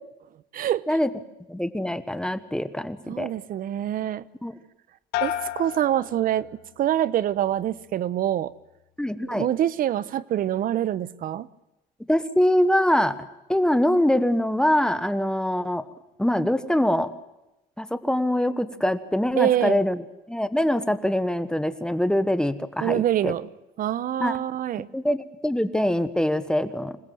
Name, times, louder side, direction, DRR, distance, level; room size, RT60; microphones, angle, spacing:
voice 1, 0.5-0.8 3.1-4.2 5.2-8.5 9.2-11.5 19.4-19.8 22.8-23.5 23.8-24.9, right 11 dB, 55° right, 0.9 m, -25 dB
voice 2, 1.5-3.3 4.4-4.5 9.0-9.5 12.1-13.2 13.5-15.8 16.2-17.1 17.8-20.0 20.3-23.3 24.2-24.3 24.9-27.0, left 1 dB, 5° left, 1.1 m, -23 dB
sound 1, 5.1-6.9 7.3-7.8, left 12 dB, 85° left, 1.7 m, -33 dB
26.0 x 18.5 x 7.7 m
cardioid pair, 110°, 17 cm